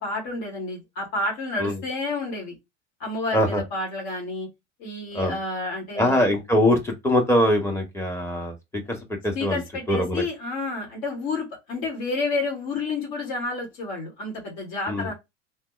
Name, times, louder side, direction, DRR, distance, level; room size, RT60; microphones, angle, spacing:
voice 1, 0.0-2.5 3.0-4.5 4.8-6.2 9.4-15.1, left 3 dB, 50° left, 1.9 m, -30 dB
voice 2, 6.0-9.6 9.9-10.2 14.9-15.1, left 1 dB, 5° left, 1.3 m, -23 dB
3.3 x 2.8 x 3.0 m
figure-of-eight pair, 75°, 37 cm